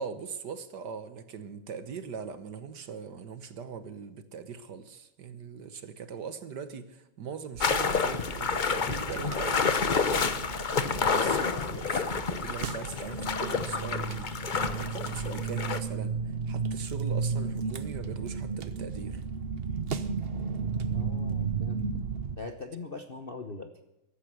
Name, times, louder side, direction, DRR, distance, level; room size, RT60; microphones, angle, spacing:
voice 1, 0.0-10.4 11.1-14.3 14.7-19.2, right 6 dB, 55° right, 12 dB, 1.5 m, -41 dB
sound 1, 7.6-15.8, left 5 dB, 65° left, 0.4 m, -29 dB
sound 2, 7.6-22.4, right 5 dB, 85° right, 0.5 m, -34 dB
voice 2, 20.9-21.9 22.4-23.7, left 3 dB, 40° left, 6 dB, 0.8 m, -41 dB
15.0 x 11.5 x 7.8 m, 0.90 s
omnidirectional pair, 2.4 m